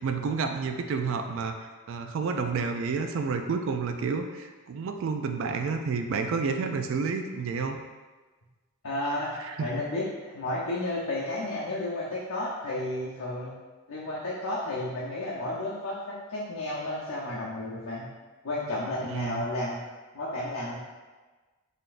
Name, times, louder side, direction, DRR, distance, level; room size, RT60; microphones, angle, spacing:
voice 1, 0.0-7.8 9.4-9.7 19.1-19.5, right 5 dB, 65° right, 6 dB, 0.3 m, -30 dB
voice 2, 8.8-9.3 9.6-13.5 13.9-18.1 18.4-19.8 20.1-20.8, left 1 dB, 80° left, -7 dB, 0.7 m, -32 dB
3.9 x 3.4 x 2.5 m, 1.3 s
head